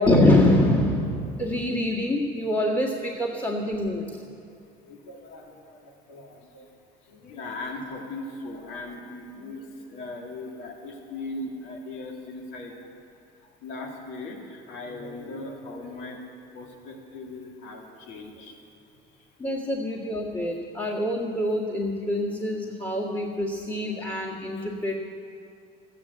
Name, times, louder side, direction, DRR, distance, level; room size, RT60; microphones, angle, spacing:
voice 1, 0.0-4.2 19.4-25.0, left 1 dB, 25° left, -5 dB, 2.0 m, -25 dB
voice 2, 4.8-6.7 7.0-13.1 13.4-18.6 19.1-19.3 24.6-24.7, left 2 dB, 80° left, 0 dB, 2.3 m, -39 dB
13.5 x 9.5 x 8.0 m, 2.5 s
cardioid pair, 95°, 19 cm